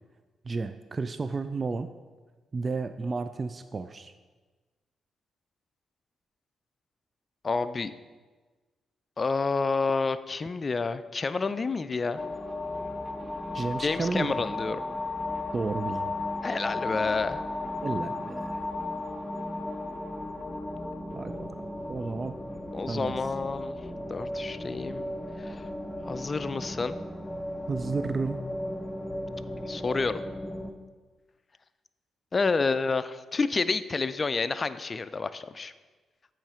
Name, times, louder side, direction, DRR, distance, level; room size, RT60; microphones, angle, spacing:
voice 1, 0.4-1.9 2.5-4.1 13.5-14.3 15.5-16.1 17.8-18.6 21.1-22.4 22.9-23.2 27.7-28.4, right 4 dB, 40° right, 10 dB, 0.3 m, -32 dB
voice 2, 7.4-7.9 9.2-12.2 13.8-14.8 16.4-17.4 22.7-23.8 24.1-25.0 25.4-25.6 26.1-27.0 29.7-30.2 32.3-35.7, left 4 dB, 40° left, 13 dB, 0.4 m, -29 dB
sound 1, 12.2-30.7, left 2 dB, 10° left, 0.7 m, -35 dB
8.6 x 3.2 x 5.6 m, 1.3 s
hypercardioid pair, 50°, 0 cm